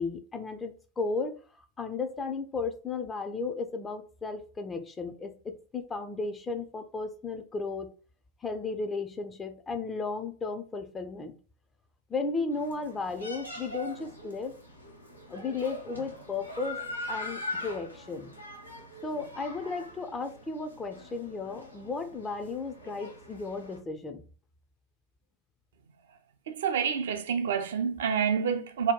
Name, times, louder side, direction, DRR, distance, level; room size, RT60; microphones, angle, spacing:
voice 1, 0.0-1.3 1.8-7.9 8.4-11.4 12.1-14.6 15.3-16.8 17.1-18.3 19.0-24.2, left 4 dB, 15° left, 0.4 m, -34 dB
sound 1, 12.5-23.8, left 1 dB, 85° left, 0.6 m, -42 dB
voice 2, 26.5-28.9, right 7 dB, 60° right, 0.4 m, -28 dB
2.8 x 2.2 x 3.6 m
figure-of-eight pair, 90°, 0 cm